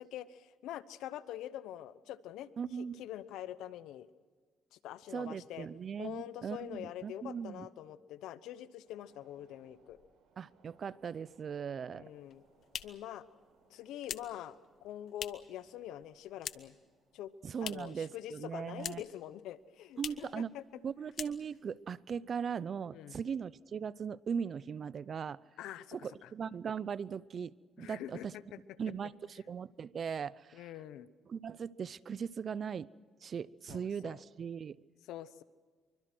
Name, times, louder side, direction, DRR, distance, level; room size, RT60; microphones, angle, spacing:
voice 1, 0.0-2.5 2.8-4.1 4.7-5.7 6.0-10.0 11.9-12.4 12.8-13.2 13.7-14.6 14.8-16.8 17.1-17.3 17.6-20.6 22.9-23.2 25.6-26.3 27.8-28.3 28.5-28.6 30.5-31.1 33.7-34.2 35.1-35.4, left 12 dB, 90° left, 15 dB, 0.9 m, -45 dB
voice 2, 2.6-3.0 5.1-7.7 10.4-12.1 17.4-19.0 20.0-20.5 20.8-25.4 25.9-28.3 28.8-30.7 31.3-32.9 33.2-34.8, right 7 dB, 50° right, 20 dB, 0.6 m, -39 dB
sound 1, 8.8-23.4 23.7-23.9, right 4 dB, 85° right, 7.7 m, -71 dB
sound 2, 12.1-15.6 15.9-16.9 17.1-18.0 18.3-19.2 19.5-19.6 19.9-20.3 20.7-20.8 21.1-21.7, left 9 dB, 65° left, 1.1 m, -44 dB
26.5 x 24.0 x 6.2 m, 1.5 s
cardioid pair, 90°, 0 cm